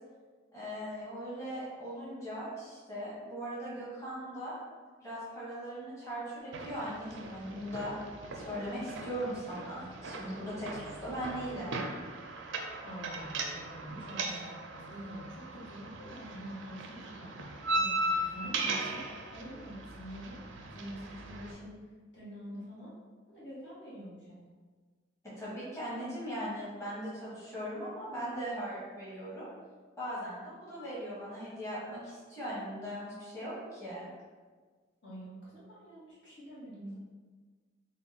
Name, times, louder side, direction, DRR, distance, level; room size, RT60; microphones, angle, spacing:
voice 1, 0.5-4.5 5.0-7.9 8.3-11.8 25.4-29.5 30.0-34.1, equal, 15° left, -9 dB, 1.0 m, -39 dB
sound 1, 6.5-21.5, right 2 dB, 75° right, 0.4 m, -38 dB
voice 2, 12.8-17.4 17.8-19.0 19.3-20.4 20.7-21.8 22.1-22.9 23.3-24.4 35.0-36.9, equal, 65° left, -9 dB, 1.4 m, -46 dB
3.6 x 2.2 x 3.9 m, 1.4 s
head